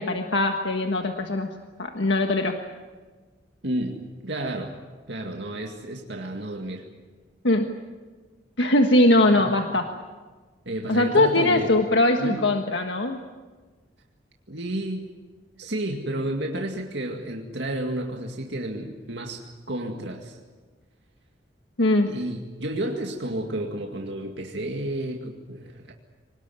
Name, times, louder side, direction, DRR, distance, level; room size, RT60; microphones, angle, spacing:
voice 1, 0.0-1.5 1.8-2.6 7.4-7.7 8.6-9.9 10.9-13.2 21.8-22.1, left 1 dB, 75° left, 4 dB, 1.5 m, -21 dB
voice 2, 3.6-4.8 5.1-6.9 9.3-9.5 10.7-11.7 12.2-12.4 14.5-15.1 15.6-20.4 22.1-25.9, right 1 dB, 70° right, 2 dB, 2.1 m, -31 dB
25.5 x 19.0 x 9.5 m, 1.4 s
head